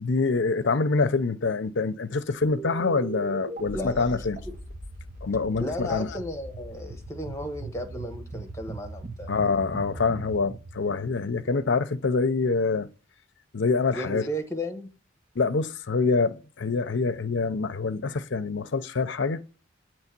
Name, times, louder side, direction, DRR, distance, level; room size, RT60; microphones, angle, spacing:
voice 1, 0.0-4.4 5.2-6.1 9.3-12.9 13.5-14.3 15.4-19.4, left 4 dB, 65° left, 0.6 m, -25 dB
sound 1, 2.4-11.8, right 3 dB, 45° right, 1.1 m, -40 dB
voice 2, 3.7-4.5 5.6-9.3 13.9-14.9, equal, 15° left, 1.1 m, -34 dB
8.2 x 3.1 x 6.0 m
head